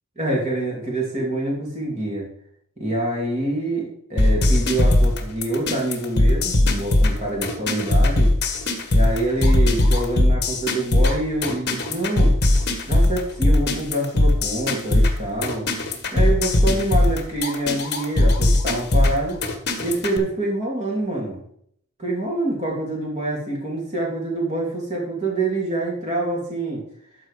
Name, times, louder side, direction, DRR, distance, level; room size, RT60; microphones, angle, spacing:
voice 1, 0.2-2.2 2.8-8.3 8.9-12.3 12.9-15.7 16.1-19.4 19.8-21.4 22.0-26.8, right 2 dB, 30° right, -3 dB, 2.9 m, -26 dB
sound 1, 4.2-20.2, left 1 dB, 50° left, 1.5 m, -19 dB
12.5 x 4.6 x 5.0 m, 0.65 s
head